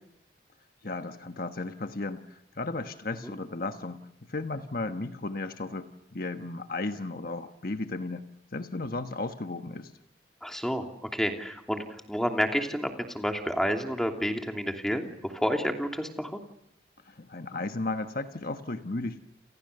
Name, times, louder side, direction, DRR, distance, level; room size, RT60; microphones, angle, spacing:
voice 1, 0.8-4.0 4.3-8.2 8.5-9.9 17.0-19.2, left 2 dB, 55° left, 8 dB, 1.3 m, -34 dB
voice 2, 10.4-16.4, equal, ahead, 4 dB, 2.9 m, -30 dB
29.5 x 29.0 x 6.8 m, 0.76 s
head